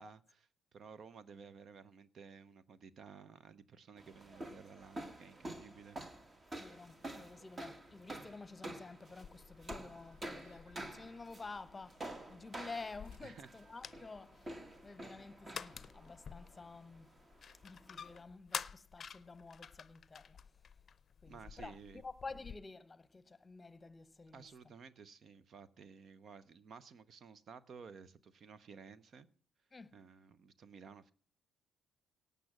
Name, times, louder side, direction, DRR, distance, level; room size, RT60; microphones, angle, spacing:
voice 1, 0.0-6.0 13.2-13.5 21.3-22.0 24.3-29.3 29.9-31.1, right 6 dB, 50° right, 0.8 m, -55 dB
sound 1, 4.0-18.2, right 1 dB, 30° right, 1.9 m, -50 dB
voice 2, 6.6-17.1 17.6-20.4 21.2-24.5 29.7-30.0, left 3 dB, 25° left, 0.9 m, -51 dB
sound 2, 6.9-17.5, right 1 dB, 75° right, 3.6 m, -73 dB
sound 3, 9.2-22.6, left 7 dB, 45° left, 0.6 m, -51 dB
18.0 x 6.9 x 6.2 m
hypercardioid pair, 45°, 0 cm